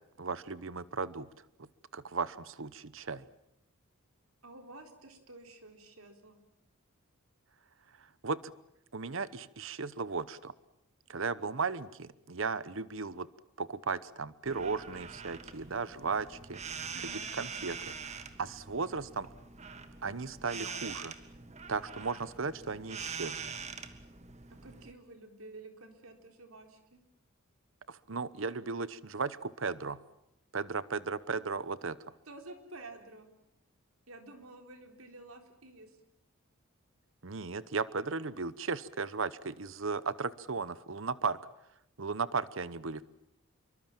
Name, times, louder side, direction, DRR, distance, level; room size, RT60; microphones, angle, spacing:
voice 1, 0.2-1.3 1.9-3.2 8.2-8.4 8.9-10.5 11.1-13.3 13.6-16.6 17.4-19.3 20.0-21.1 21.7-23.5 27.9-30.0 30.5-32.0 37.2-41.4 42.0-43.0, right 4 dB, 60° right, 17 dB, 0.9 m, -36 dB
voice 2, 4.4-6.4 16.9-17.2 24.6-27.0 32.3-33.3 34.1-36.0, right 2 dB, 80° right, 5 dB, 4.3 m, -51 dB
sound 1, 14.4-24.9, right 5 dB, 30° right, 1.8 m, -44 dB
27.0 x 23.5 x 7.6 m, 0.82 s
head